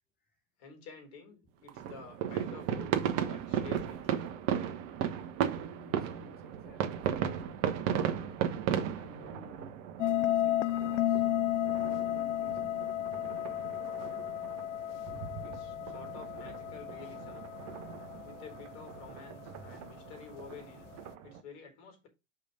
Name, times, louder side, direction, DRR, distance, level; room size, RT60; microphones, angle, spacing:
voice 1, 0.6-4.3 15.4-17.5 18.2-20.9 21.2-22.1, left 5 dB, 55° left, 4.2 m, -50 dB
sound 1, 1.7-21.4, right 9 dB, 40° right, 1.2 m, -36 dB
voice 2, 5.7-8.4 8.9-11.3 11.7-12.8 14.4-14.6, left 2 dB, 25° left, 2.6 m, -55 dB
sound 2, 10.0-19.3, left 12 dB, 70° left, 0.5 m, -33 dB
5.9 x 5.1 x 5.5 m
hypercardioid pair, 100°, 38 cm